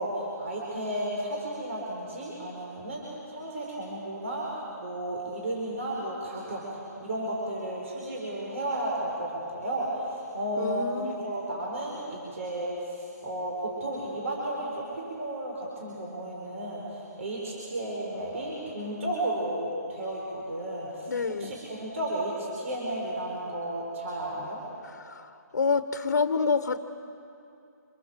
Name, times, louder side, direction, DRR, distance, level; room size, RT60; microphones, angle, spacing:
voice 1, 0.0-24.6, right 1 dB, 50° right, -3 dB, 5.6 m, -33 dB
voice 2, 10.6-11.2 21.1-21.5 25.0-26.8, left 4 dB, 65° left, 9 dB, 1.4 m, -28 dB
28.0 x 27.5 x 7.7 m, 2.6 s
hypercardioid pair, 175°, 10 cm